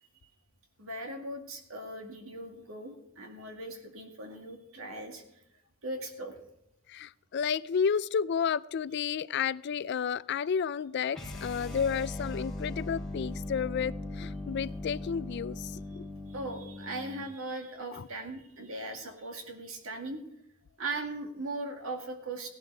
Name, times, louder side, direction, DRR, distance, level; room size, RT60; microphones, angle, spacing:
voice 1, 0.8-5.2 5.8-6.4 16.3-20.2 20.8-22.5, right 2 dB, 70° right, 2.1 m, -39 dB
voice 2, 6.9-16.1 17.9-18.1, left 7 dB, 50° left, 0.3 m, -31 dB
sound 1, 11.1-17.3, left 1 dB, ahead, 3.2 m, -39 dB
16.5 x 12.0 x 3.4 m
head